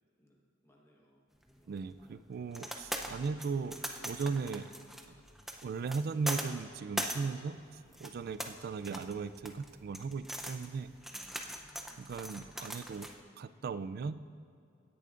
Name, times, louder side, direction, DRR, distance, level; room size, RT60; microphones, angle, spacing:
voice 1, 0.6-1.2 1.6-1.9 11.0-12.1, equal, 15° left, -2 dB, 1.1 m, -65 dB
sound 1, 1.4-13.1, equal, ahead, 0.5 m, -42 dB
voice 2, 1.7-4.7 5.6-7.6 8.0-10.9 12.0-13.1 13.4-14.2, right 5 dB, 50° right, 14 dB, 0.3 m, -37 dB
16.5 x 10.5 x 2.5 m, 2.4 s
head